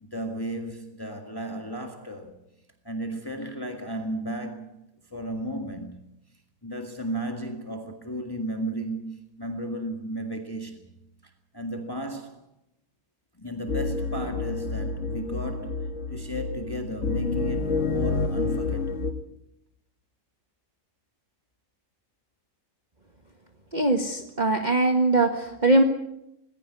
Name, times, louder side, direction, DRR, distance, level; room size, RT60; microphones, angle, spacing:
voice 1, 0.1-2.4 2.8-4.8 5.1-6.0 6.6-10.9 11.2-12.5 13.3-19.1, right 1 dB, 15° left, 1.8 m, -34 dB
sound 1, 13.7-19.1, left 3 dB, 65° left, 1.9 m, -29 dB
voice 2, 23.7-25.8, right 2 dB, 35° right, 1.7 m, -21 dB
19.5 x 16.5 x 9.6 m
omnidirectional pair, 1.4 m